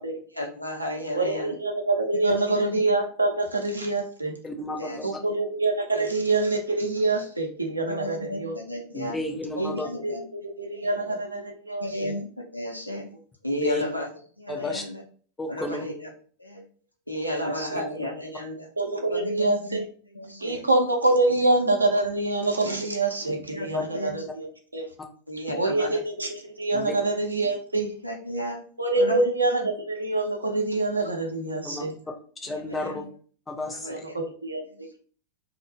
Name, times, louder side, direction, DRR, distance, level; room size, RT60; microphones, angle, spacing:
voice 1, 0.4-1.5 2.1-2.7 4.8-5.1 6.0-6.1 7.9-9.2 9.6-10.2 10.6-11.0 11.8-12.3 12.5-13.1 13.4-14.1 14.4-15.0 15.5-16.1 16.4-16.6 17.1-18.7 19.1-19.8 20.2-20.6 23.5-24.1 25.3-26.0 28.0-28.6 29.0-29.3 32.5-33.0 33.8-34.2, equal, 90° left, 0 dB, 0.4 m, -33 dB
voice 2, 1.1-4.3 5.0-8.8 9.5-12.1 17.4-17.8 18.8-19.8 20.4-24.9 25.6-27.9 28.8-31.9 33.8-34.6, right 2 dB, 80° right, 3 dB, 0.5 m, -26 dB
voice 3, 4.4-5.1 8.9-9.9 13.5-13.8 14.5-14.8 15.4-15.9 17.7-17.8 23.7-23.8 26.7-26.9 31.6-31.8 32.4-33.1 33.5-34.0, left 2 dB, 10° left, 3 dB, 0.4 m, -32 dB
2.0 x 2.0 x 3.1 m, 0.44 s
figure-of-eight pair, 90°, 0 cm